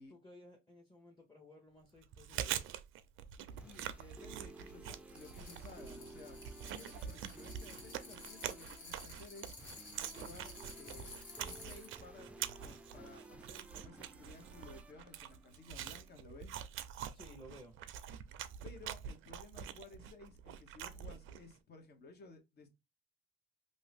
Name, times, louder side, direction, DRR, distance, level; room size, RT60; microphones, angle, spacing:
voice 1, 0.0-2.6 17.1-17.8, left 1 dB, 20° left, 0.9 m, -57 dB
Chewing mastication, 2.0-21.5, right 10 dB, 85° right, 0.4 m, -45 dB
sound 1, 3.4-16.2, right 2 dB, 5° right, 0.4 m, -56 dB
voice 2, 3.6-9.6 10.1-12.3 12.6-16.6 18.6-22.7, left 3 dB, 55° left, 1.0 m, -56 dB
sound 2, 5.1-11.9, left 3 dB, 70° left, 1.3 m, -54 dB
2.6 x 2.6 x 3.4 m
cardioid pair, 90°, 20 cm